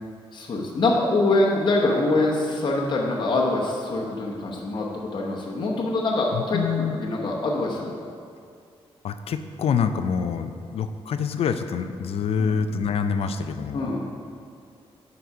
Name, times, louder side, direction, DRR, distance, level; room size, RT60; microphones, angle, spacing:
voice 1, 0.3-8.0 12.4-12.6 13.7-14.0, left 2 dB, 50° left, -2 dB, 0.9 m, -24 dB
voice 2, 6.3-7.0 9.0-13.9, left 6 dB, 70° left, 9 dB, 0.4 m, -26 dB
9.3 x 4.0 x 5.6 m, 2.3 s
wide cardioid pair, 145°, 10 cm